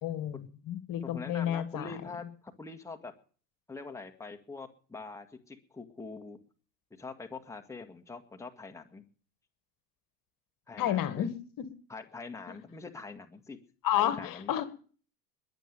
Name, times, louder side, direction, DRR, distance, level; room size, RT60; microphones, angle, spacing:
voice 1, 0.0-1.9 10.8-11.7 12.5-12.6 13.8-14.7, left 11 dB, 45° left, 13 dB, 1.9 m, -31 dB
voice 2, 1.0-3.1 3.7-6.4 7.0-9.0 10.7-11.3 11.9-13.6 13.9-14.5, left 3 dB, 5° left, 5 dB, 1.8 m, -44 dB
21.5 x 7.8 x 6.8 m, 0.42 s
hypercardioid pair, 85°, 47 cm